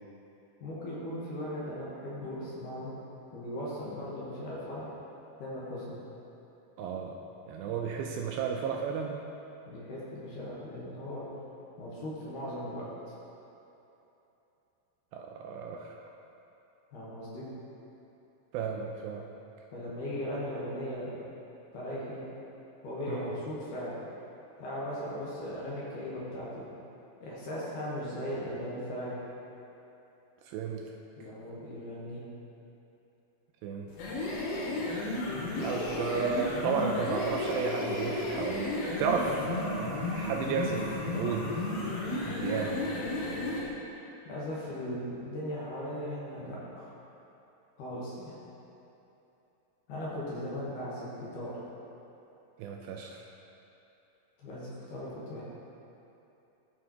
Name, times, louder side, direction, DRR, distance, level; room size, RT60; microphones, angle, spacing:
voice 1, 0.6-3.0 3.3-4.9 5.4-6.0 9.7-11.2 11.8-12.9 16.9-17.5 19.7-21.1 21.7-22.2 22.8-24.0 24.6-26.7 27.2-29.2 31.2-32.2 44.3-46.9 47.8-48.4 49.9-51.6 54.4-55.4, left 1 dB, 65° left, -7 dB, 2.4 m, -38 dB
voice 2, 6.8-7.2 7.5-9.2 15.1-16.0 18.5-19.3 23.1-23.3 30.5-30.8 33.6-33.9 35.6-41.5 42.2-42.8 52.6-53.2, right 5 dB, 80° right, 1 dB, 2.2 m, -33 dB
sound 1, 33.9-43.7, left 2 dB, 85° left, 3.0 m, -33 dB
13.0 x 4.8 x 2.9 m, 3.0 s
omnidirectional pair, 4.4 m